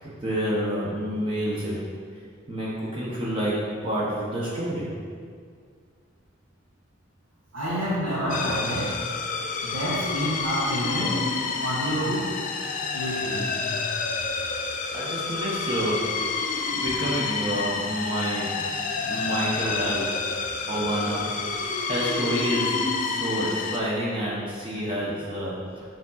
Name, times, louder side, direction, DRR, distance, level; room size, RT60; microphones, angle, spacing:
voice 1, 0.0-1.8 2.5-5.0 14.9-16.1 16.7-18.5 19.0-20.1 20.7-21.3 21.6-25.8, equal, 25° right, -7 dB, 0.9 m, -28 dB
voice 2, 7.5-9.0 9.6-11.2 11.6-12.3 12.9-13.5, equal, 85° right, -11 dB, 1.5 m, -28 dB
sound 1, 8.3-23.8, left 4 dB, 40° left, 0.4 m, -29 dB
4.9 x 3.7 x 5.6 m, 2.1 s
head